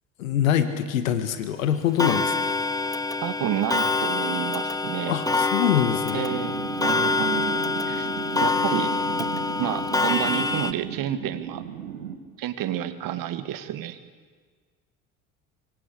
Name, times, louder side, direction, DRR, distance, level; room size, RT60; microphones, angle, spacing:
voice 1, 0.2-2.5 5.1-6.3, left 9 dB, 80° left, 10 dB, 1.9 m, -24 dB
Clock, 2.0-10.7, left 3 dB, 10° left, 1.3 m, -25 dB
voice 2, 3.2-5.2 6.1-7.6 7.9-8.1 8.4-8.9 9.6-11.6 12.4-14.0, right 11 dB, 55° right, 10 dB, 2.3 m, -30 dB
sound 1, 6.3-12.2, right 9 dB, 80° right, 2.7 m, -36 dB
25.0 x 24.0 x 8.6 m, 1.5 s
hypercardioid pair, 60°, 40 cm